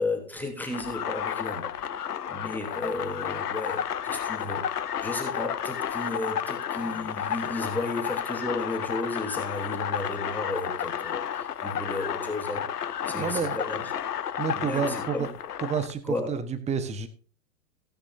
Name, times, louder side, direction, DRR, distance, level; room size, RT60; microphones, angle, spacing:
voice 1, 0.0-1.7 2.3-13.8 14.5-15.3 16.0-16.3, left 2 dB, 5° left, 1 dB, 3.3 m, -34 dB
sound 1, 0.7-15.9, left 9 dB, 70° left, 1.3 m, -32 dB
voice 2, 13.1-13.6 14.4-15.3 15.6-17.1, right 6 dB, 15° right, 11 dB, 1.4 m, -29 dB
18.0 x 9.9 x 2.8 m, 0.39 s
figure-of-eight pair, 115°, 49 cm